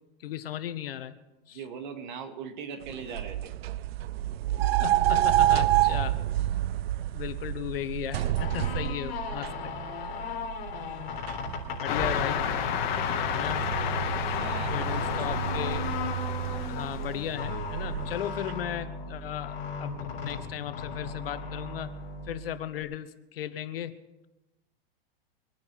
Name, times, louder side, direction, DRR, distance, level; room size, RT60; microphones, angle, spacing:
voice 1, 0.2-1.1 1.5-1.6 4.8-6.2 7.1-9.7 10.1-10.2 11.8-12.4 13.3-13.7 14.7-15.9 16.7-21.9 22.3-24.3, left 11 dB, 70° left, 12 dB, 1.2 m, -36 dB
voice 2, 1.5-3.5 6.9-7.1 11.9-12.0 12.8-13.1 13.4-13.7 14.2-15.7 16.5-16.7, right 6 dB, 50° right, 6 dB, 2.1 m, -42 dB
sound 1, 2.8-18.5, right 13 dB, 85° right, 0.5 m, -30 dB
sound 2, 8.4-22.8, left 5 dB, 30° left, 3.7 m, -36 dB
sound 3, 11.8-17.4, left 9 dB, 50° left, 1.8 m, -32 dB
24.0 x 9.7 x 4.7 m, 1.0 s
supercardioid pair, 160°, 30 cm